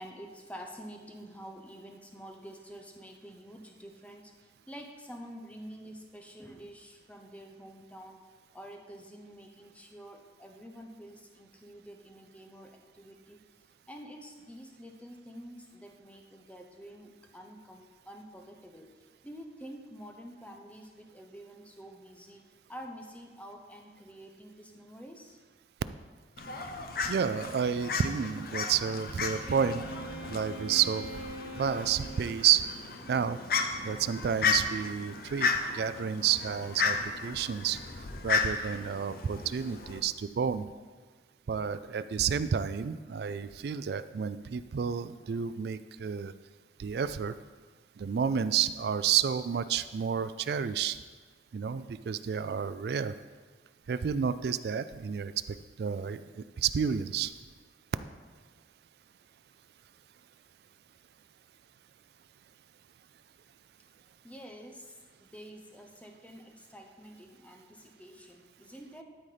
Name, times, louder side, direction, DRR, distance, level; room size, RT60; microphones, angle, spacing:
voice 1, 0.0-8.2 8.5-13.4 13.9-22.4 22.7-25.4 64.2-69.0, equal, 10° left, 3 dB, 0.7 m, -48 dB
Fowl, 26.4-40.0, left 4 dB, 55° left, 0.7 m, -34 dB
voice 2, 27.1-29.8 30.3-31.1 31.6-32.7 33.1-33.4 33.8-37.0 37.2-37.8 38.2-40.7 41.5-46.3 46.8-47.3 48.0-51.0 51.5-53.1 53.9-55.3 55.8-57.3, right 7 dB, 60° right, 13 dB, 0.3 m, -30 dB
Wind instrument woodwind instrument, 29.4-32.3, right 2 dB, 10° right, 1.6 m, -43 dB
12.0 x 4.2 x 5.0 m, 1.4 s
head